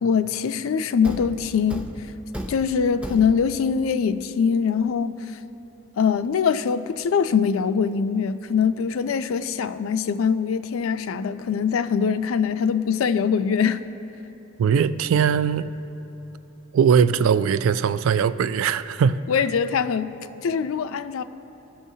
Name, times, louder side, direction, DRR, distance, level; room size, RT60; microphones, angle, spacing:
voice 1, 0.0-1.9 2.5-5.4 6.0-13.9 19.3-20.1 20.4-21.2, left 6 dB, 85° left, 12 dB, 0.4 m, -23 dB
Thump thud, 1.0-3.7, equal, 5° right, 0.5 m, -36 dB
voice 2, 14.6-15.7 16.7-19.2, right 7 dB, 80° right, 14 dB, 0.3 m, -20 dB
18.0 x 6.2 x 2.7 m, 3.0 s
head